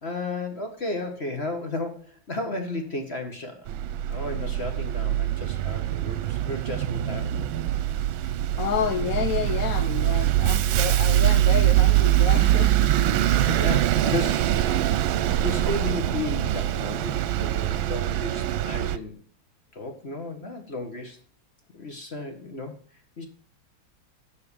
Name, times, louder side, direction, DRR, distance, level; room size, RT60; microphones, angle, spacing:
voice 1, 0.0-3.7 4.0-7.4 13.2-14.9 15.4-19.2 19.7-21.2 21.7-22.8 23.2-23.3, left 2 dB, 35° left, 5 dB, 1.7 m, -34 dB
Bus, 3.7-19.0, right 13 dB, 80° right, 1.4 m, -23 dB
voice 2, 8.2-12.9, left 8 dB, 60° left, 9 dB, 1.0 m, -30 dB
12.5 x 5.0 x 6.9 m, 0.41 s
omnidirectional pair, 2.2 m